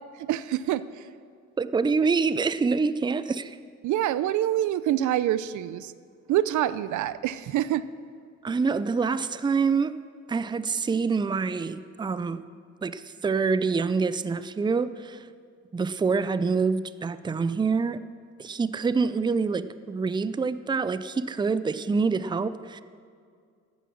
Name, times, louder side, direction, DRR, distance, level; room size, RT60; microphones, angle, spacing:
voice 1, 0.2-1.1 3.8-5.9 6.3-7.9, right 12 dB, 75° right, 16 dB, 0.6 m, -26 dB
voice 2, 1.6-3.6 8.4-10.0 10.3-12.4 12.8-15.2 15.7-18.0 18.4-22.8, right 4 dB, 15° right, 14 dB, 0.5 m, -26 dB
14.5 x 9.4 x 6.3 m, 2.2 s
cardioid pair, 90°, 30 cm